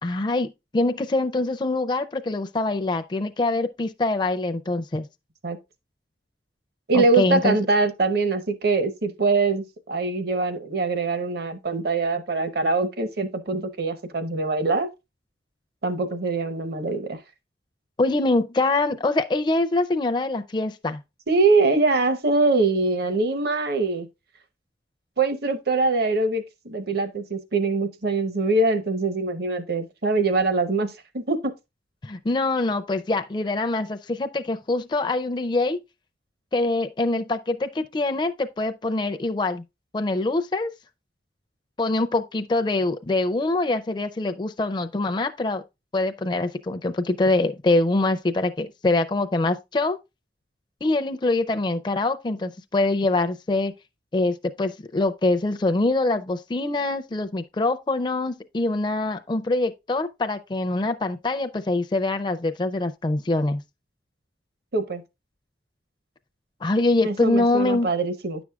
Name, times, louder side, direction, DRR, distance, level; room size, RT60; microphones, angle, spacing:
voice 1, 0.0-5.1 6.9-7.6 18.0-21.0 32.0-35.8 36.5-39.6 39.9-40.7 41.8-45.6 45.9-50.0 50.8-53.7 54.1-63.6 66.6-67.9, left 2 dB, 25° left, 0.4 m, -24 dB
voice 2, 6.9-14.9 15.8-17.2 21.3-24.1 25.2-31.4 64.7-65.0 67.0-68.4, right 3 dB, 60° right, 0.8 m, -23 dB
9.9 x 6.1 x 2.3 m
head